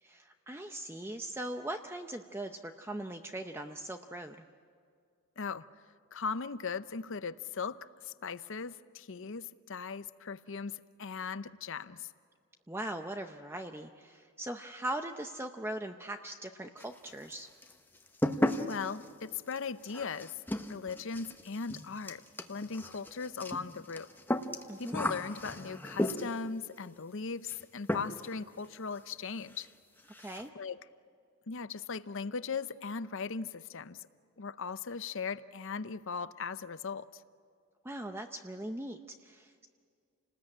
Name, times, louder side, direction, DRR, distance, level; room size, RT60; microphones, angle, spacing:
voice 1, 0.0-4.4 12.7-17.5 24.7-25.0 30.2-30.5 37.8-39.7, right 1 dB, 10° right, 6 dB, 0.6 m, -40 dB
voice 2, 5.4-5.7 6.1-12.1 18.6-20.4 20.7-22.2 22.5-24.1 24.8-29.7 30.5-30.8 31.5-34.1 34.4-37.1, left 5 dB, 60° left, 14 dB, 0.7 m, -38 dB
sound 1, 16.8-17.3 17.6-26.5 27.5-27.6 27.9-28.4 28.6-28.7 29.1-29.2 29.5-29.7 30.0-30.5, left 1 dB, 10° left, 1.0 m, -35 dB
29.5 x 19.5 x 8.8 m, 2.2 s
head